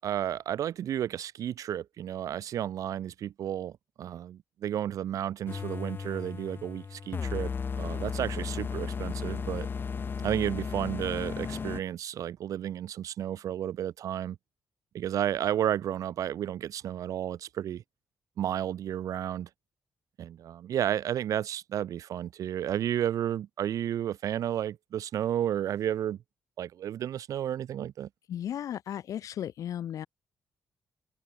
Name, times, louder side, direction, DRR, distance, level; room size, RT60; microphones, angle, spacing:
voice 1, 0.0-7.5 7.8-9.7 10.2-14.4 14.9-17.8 18.4-19.5 20.2-26.2 26.6-28.1, right 10 dB, 80° right, 7.9 m, -32 dB
sound 1, 5.5-11.8, left 5 dB, 40° left, 4.3 m, -35 dB
voice 2, 28.3-30.1, left 10 dB, 80° left, 4.9 m, -35 dB
open air
cardioid pair, 130°, 6 cm